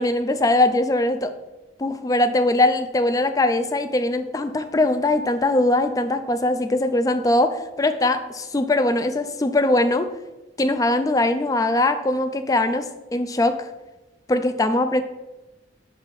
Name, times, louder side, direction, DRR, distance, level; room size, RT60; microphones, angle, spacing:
voice 1, 0.0-1.3 1.8-10.1 10.6-13.7 14.3-15.0, left 2 dB, 20° left, 10 dB, 0.3 m, -21 dB
5.8 x 4.0 x 4.1 m, 1.0 s
head